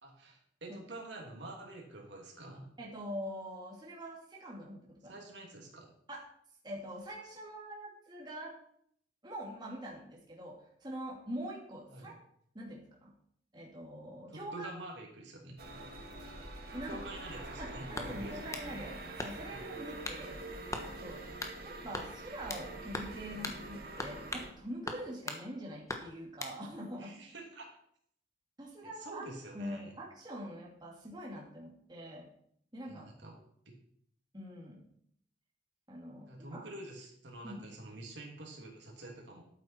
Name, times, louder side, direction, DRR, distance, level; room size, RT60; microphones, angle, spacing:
voice 1, 0.0-2.7 5.1-5.9 11.9-12.1 14.3-15.6 16.9-18.5 19.5-19.6 27.0-27.7 28.8-29.9 32.9-33.3 36.3-39.4, right 2 dB, 75° right, 0 dB, 2.9 m, -47 dB
voice 2, 2.8-5.2 6.1-6.2 6.6-8.5 9.2-12.1 12.5-13.1 13.5-14.7 16.7-17.0 17.6-20.4 21.0-21.4 21.6-27.1 28.6-29.2 29.5-32.3 32.7-33.1 34.3-34.8 35.9-36.7 37.4-37.6, equal, 25° right, -3 dB, 2.5 m, -44 dB
sound 1, 15.6-24.5, right 2 dB, 55° right, 2.2 m, -45 dB
sound 2, 17.9-18.7 19.2-19.6 20.0-20.2 20.7-20.9 21.4-21.6 21.9-22.7 22.9-23.2 23.4-23.6 24.0-24.5 24.9-25.4 25.9-26.6, left 2 dB, 15° left, 1.2 m, -40 dB
12.0 x 8.9 x 4.5 m, 0.67 s
head